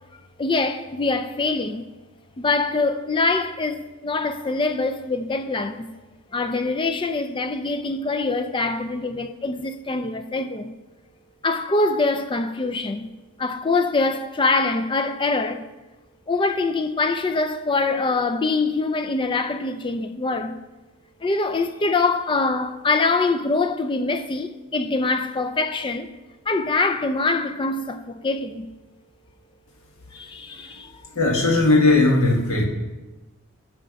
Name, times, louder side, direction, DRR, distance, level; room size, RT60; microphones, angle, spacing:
voice 1, 0.4-1.8 2.4-5.9 6.3-10.7 11.4-13.1 13.4-15.6 16.3-20.6 21.2-26.1 26.5-28.7 30.1-30.9, left 3 dB, 20° left, 0.4 m, -24 dB
voice 2, 31.1-32.7, left 2 dB, 65° left, 1.4 m, -17 dB
9.1 x 5.7 x 5.2 m
head